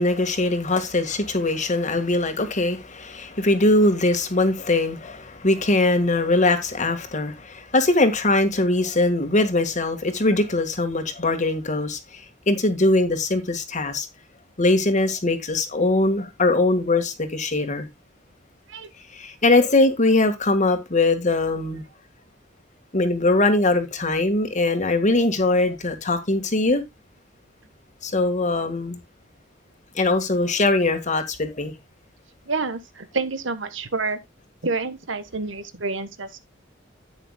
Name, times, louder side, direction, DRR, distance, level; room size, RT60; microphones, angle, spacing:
voice 1, 0.0-14.1 14.6-17.9 19.1-21.8 22.9-26.8 28.0-29.0 30.0-31.7, left 2 dB, 40° left, 1.8 m, -21 dB
voice 2, 32.4-34.2 34.6-36.4, right 3 dB, 75° right, 1.3 m, -28 dB
10.5 x 9.2 x 2.3 m
head